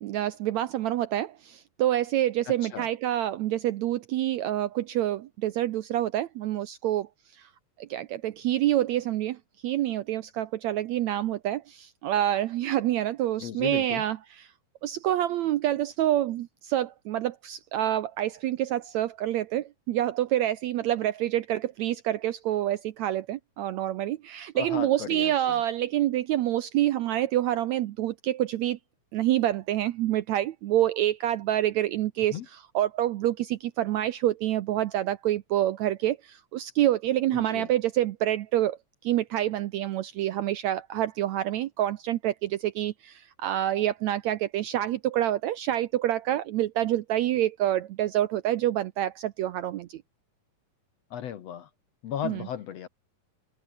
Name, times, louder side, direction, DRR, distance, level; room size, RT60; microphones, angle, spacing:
voice 1, 0.0-7.5 7.8-9.4 9.6-14.5 14.8-28.8 29.1-38.8 39.0-50.0 52.2-52.5, right 13 dB, 75° right, 1.7 m, -27 dB
voice 2, 13.4-14.0 24.6-25.6 32.3-32.5 37.3-37.7 51.1-51.7 52.0-52.9, left 9 dB, 60° left, 1.9 m, -35 dB
omnidirectional pair, 3.9 m